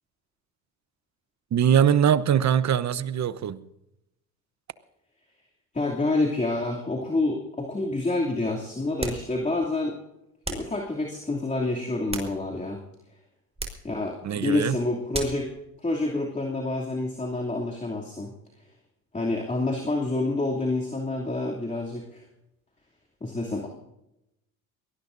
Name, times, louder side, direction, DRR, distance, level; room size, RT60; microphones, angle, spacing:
voice 1, 1.5-3.6 14.2-14.8, right 9 dB, 35° right, 16 dB, 1.0 m, -22 dB
voice 2, 5.7-10.0 10.5-12.8 13.8-15.5 15.8-18.3 19.1-22.2 23.2-23.7, left 2 dB, 15° left, -1 dB, 2.8 m, -28 dB
sound 1, 9.0-9.3 10.4-10.8 11.8-12.7 13.6-13.9 15.1-15.5, right 2 dB, 15° right, 4.2 m, -35 dB
23.0 x 18.5 x 2.7 m, 0.88 s
hypercardioid pair, 70°, 46 cm